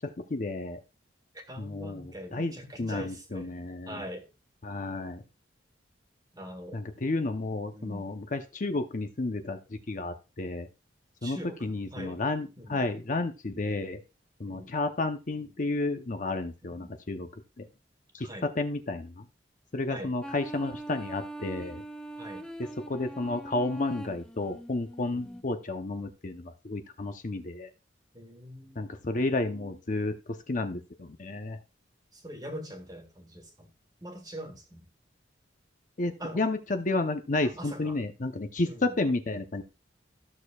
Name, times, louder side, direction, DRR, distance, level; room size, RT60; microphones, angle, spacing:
voice 1, 0.3-0.8 1.6-2.5 2.8-4.0 4.6-5.2 6.7-10.7 11.2-14.0 14.4-17.3 17.6-17.7 18.1-18.3 18.6-19.3 19.7-21.8 22.9-27.7 28.8-30.1 30.5-31.6 36.0-39.6, left 2 dB, 45° left, 0.8 m, -31 dB
voice 2, 1.3-3.5 3.8-4.3 6.3-6.8 7.7-8.1 11.2-12.2 12.6-12.8 14.5-14.7 16.6-17.0 18.2-18.5 19.9-20.1 22.2-22.5 25.1-25.4 28.1-28.9 32.1-33.7 34.0-34.9 36.2-36.4 37.4-38.0 38.6-39.0, equal, 20° right, 1.7 m, -43 dB
sound 1, 20.2-25.4, right 1 dB, 5° left, 0.6 m, -42 dB
14.5 x 6.5 x 2.3 m
head